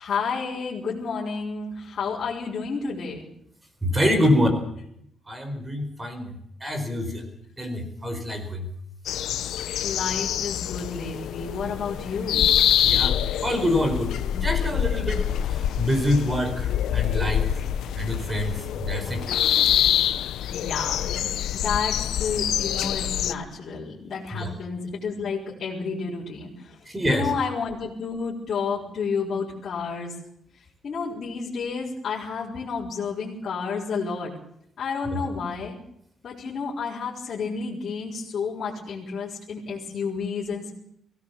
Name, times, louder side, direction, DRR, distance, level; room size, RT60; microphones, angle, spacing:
voice 1, 0.0-3.2 9.8-12.6 20.5-26.7 27.1-30.1 30.8-34.3 34.8-35.8 36.2-40.7, left 5 dB, 45° left, -7 dB, 5.2 m, -31 dB
voice 2, 3.8-4.6 5.3-6.3 6.6-7.2 7.6-8.7 12.8-13.2 13.4-15.2 15.5-17.5 17.9-19.2 24.3-24.5 26.9-27.3 35.1-35.2, left 1 dB, 15° right, 7 dB, 4.7 m, -25 dB
sound 1, 9.1-23.3, left 10 dB, 85° left, 0.9 m, -25 dB
23.0 x 17.0 x 7.1 m, 0.73 s
cardioid pair, 150°, 0 cm